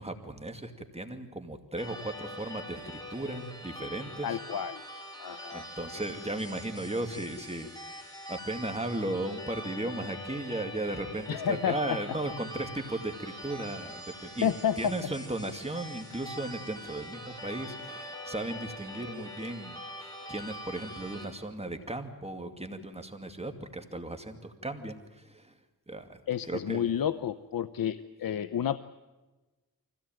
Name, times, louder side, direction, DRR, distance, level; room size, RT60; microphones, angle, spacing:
voice 1, 0.0-4.4 5.5-14.5 14.8-25.5 25.9-26.2 26.5-26.9, right 1 dB, 15° right, 6 dB, 2.4 m, -36 dB
sound 1, 1.8-21.3, equal, 10° left, 5.2 m, -44 dB
voice 2, 4.2-4.8 5.2-5.7 11.3-12.0 14.4-14.9 26.3-28.8, left 9 dB, 70° left, 14 dB, 0.7 m, -30 dB
24.5 x 16.5 x 9.1 m, 1.2 s
cardioid pair, 70°, 36 cm